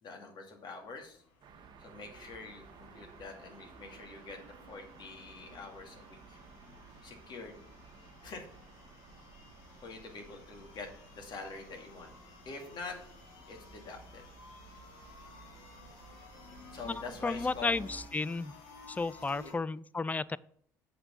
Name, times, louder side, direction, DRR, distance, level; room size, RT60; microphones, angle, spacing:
voice 1, 0.0-1.2 1.8-6.4 7.0-7.6 8.2-8.4 9.8-10.9 11.2-12.1 12.5-13.0 13.5-14.2 16.7-17.7 19.4-19.5, left 4 dB, 55° left, 2 dB, 2.5 m, -45 dB
sound 1, 0.8-19.5, left 3 dB, 80° left, 1.5 m, -56 dB
sound 2, 1.4-18.1, right 6 dB, 55° right, 1.4 m, -55 dB
voice 2, 16.9-18.5 19.0-20.4, left 3 dB, 15° left, 19 dB, 0.4 m, -33 dB
7.6 x 5.9 x 5.4 m, 0.62 s
hypercardioid pair, 65°, 9 cm